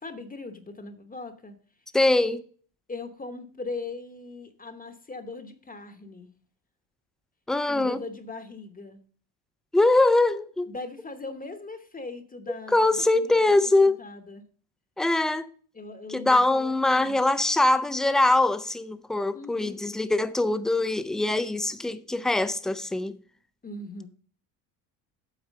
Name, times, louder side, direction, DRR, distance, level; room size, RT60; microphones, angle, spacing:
voice 1, 0.0-1.6 2.9-6.3 7.7-9.0 10.7-14.4 15.7-17.2 19.3-19.8 23.6-24.1, left 3 dB, 20° left, 0.9 m, -40 dB
voice 2, 1.9-2.4 7.5-8.0 9.7-10.7 12.7-14.0 15.0-15.5 16.1-23.2, left 2 dB, ahead, 0.4 m, -23 dB
8.2 x 4.8 x 6.4 m
cardioid pair, 110°, 45 cm